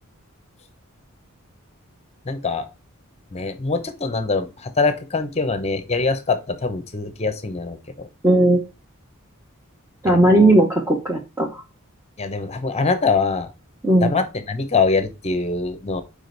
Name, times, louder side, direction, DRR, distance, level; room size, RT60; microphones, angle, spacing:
voice 1, 2.2-2.7 3.3-8.1 10.1-10.5 12.2-13.5 14.0-16.0, left 4 dB, 30° left, 9 dB, 0.8 m, -23 dB
voice 2, 8.2-8.6 10.0-11.6 13.8-14.1, right 1 dB, 10° right, 0 dB, 0.8 m, -16 dB
5.1 x 5.0 x 3.9 m, 0.28 s
head